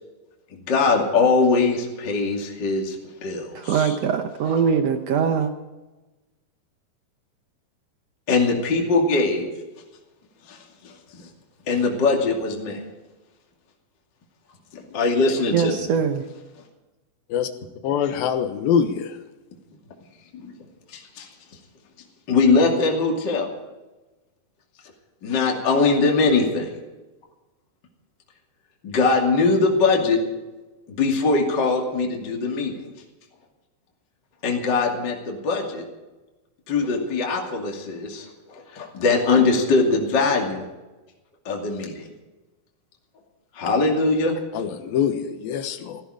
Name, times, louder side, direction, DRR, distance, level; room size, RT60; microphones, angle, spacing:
voice 1, 0.5-3.0 3.2-3.9 8.3-9.5 10.5-10.9 11.7-12.8 14.7-15.8 20.4-20.5 20.9-21.3 22.3-23.5 25.2-26.7 28.8-30.2 30.9-32.8 34.4-35.9 36.7-40.7 41.4-42.1 43.5-44.4, left 3 dB, 30° left, 2.7 m, -21 dB
voice 2, 3.5-5.5 15.5-16.2, right 7 dB, 85° right, 1.4 m, -22 dB
voice 3, 17.8-19.2 44.5-46.0, left 8 dB, 80° left, 2.9 m, -24 dB
16.5 x 16.0 x 5.0 m
omnidirectional pair, 4.2 m